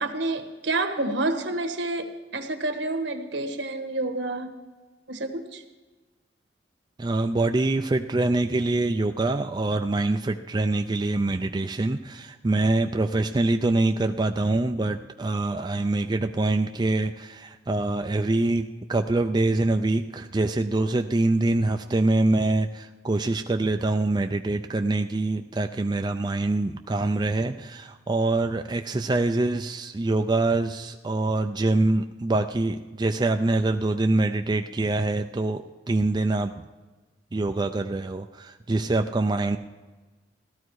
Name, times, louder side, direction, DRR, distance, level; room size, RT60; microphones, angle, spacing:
voice 1, 0.0-4.5 5.1-5.6, right 2 dB, 75° right, 6 dB, 1.4 m, -29 dB
voice 2, 7.0-36.5 37.3-39.6, right 2 dB, 25° right, 5 dB, 0.4 m, -25 dB
16.0 x 13.0 x 4.7 m, 1.2 s
head